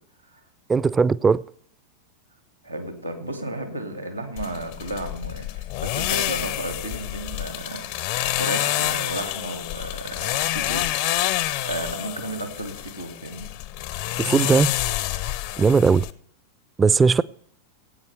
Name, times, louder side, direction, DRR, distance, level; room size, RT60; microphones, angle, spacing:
voice 1, 0.7-1.4 14.2-14.7 15.6-16.1 16.8-17.2, right 5 dB, 15° right, 0.3 m, -18 dB
voice 2, 2.6-11.2 11.6-13.5 14.4-14.6, right 1 dB, 90° right, 2.2 m, -33 dB
sound 1, 4.4-16.1, left 14 dB, 50° left, 0.6 m, -28 dB
18.5 x 8.6 x 3.4 m
figure-of-eight pair, 90°, 0 cm